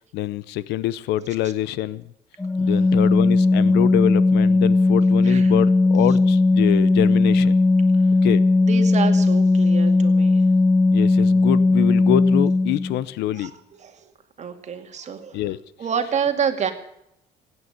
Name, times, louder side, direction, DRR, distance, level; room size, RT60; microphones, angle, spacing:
voice 1, 0.1-2.0 2.6-7.5 8.2-8.4 10.9-13.5 15.3-15.6, left 14 dB, 85° left, 18 dB, 0.7 m, -25 dB
Organ, 2.4-13.0, left 3 dB, 10° left, 0.6 m, -17 dB
voice 2, 8.6-10.4 13.3-13.5 13.8-14.1 14.4-15.4 15.8-16.7, right 7 dB, 45° right, 6 dB, 2.4 m, -28 dB
16.5 x 9.4 x 9.3 m, 0.79 s
cardioid pair, 110°, 17 cm